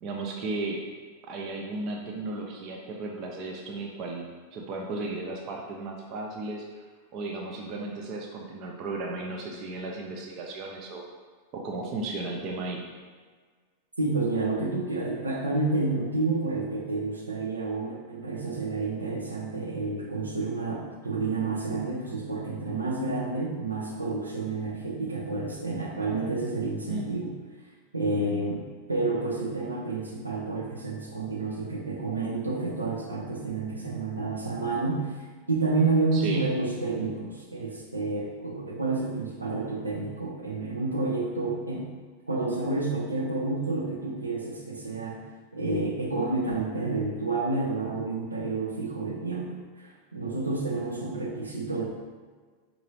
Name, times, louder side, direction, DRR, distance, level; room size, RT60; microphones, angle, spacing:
voice 1, 0.0-0.8 1.3-6.9 7.1-11.0 11.5-12.8 26.9-27.2 28.1-28.5 36.1-36.4 51.0-51.1, right 2 dB, 40° right, 0 dB, 0.5 m, -35 dB
voice 2, 14.0-27.4 27.9-28.6 28.9-41.9 42.3-45.2 45.5-51.8, right 3 dB, 80° right, -2 dB, 0.7 m, -29 dB
4.7 x 2.6 x 3.0 m, 1.5 s
figure-of-eight pair, 90°, 0 cm